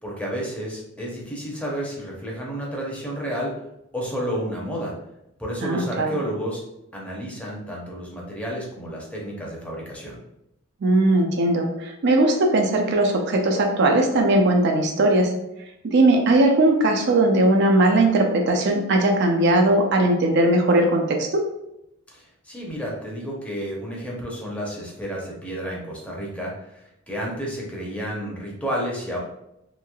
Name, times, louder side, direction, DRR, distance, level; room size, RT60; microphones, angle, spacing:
voice 1, 0.0-3.5 3.9-4.9 5.4-6.6 6.9-10.2 22.1-29.2, equal, 5° left, -3 dB, 0.7 m, -31 dB
voice 2, 5.6-6.1 10.8-15.3 15.8-21.4, right 2 dB, 60° right, 2 dB, 0.4 m, -19 dB
3.0 x 2.7 x 2.3 m, 0.85 s
head